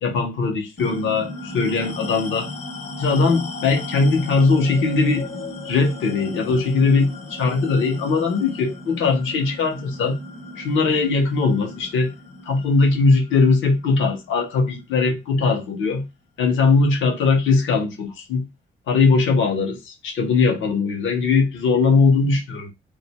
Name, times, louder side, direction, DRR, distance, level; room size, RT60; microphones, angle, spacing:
voice 1, 0.0-2.5 3.0-5.3 5.6-10.2 10.6-12.1 12.4-16.1 16.4-18.5 18.9-22.7, left 4 dB, 75° left, 1.0 m, -20 dB
sound 1, 0.8-15.6, left 2 dB, 35° left, 0.6 m, -36 dB
2.6 x 2.1 x 2.9 m
cardioid pair, 90°, 20 cm